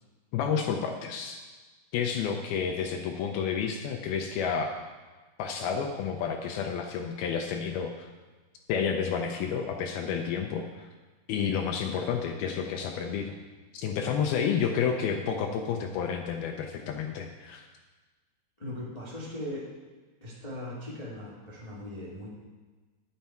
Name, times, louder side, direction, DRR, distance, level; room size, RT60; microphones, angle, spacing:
voice 1, 0.3-1.4 1.9-4.7 5.4-8.1 8.7-10.9 11.3-13.4 13.7-17.7, left 7 dB, 80° left, 4 dB, 2.2 m, -30 dB
voice 2, 18.6-19.7 20.2-22.3, left 1 dB, 55° left, -7 dB, 0.4 m, -39 dB
10.0 x 9.1 x 4.5 m, 1.3 s
omnidirectional pair, 5.0 m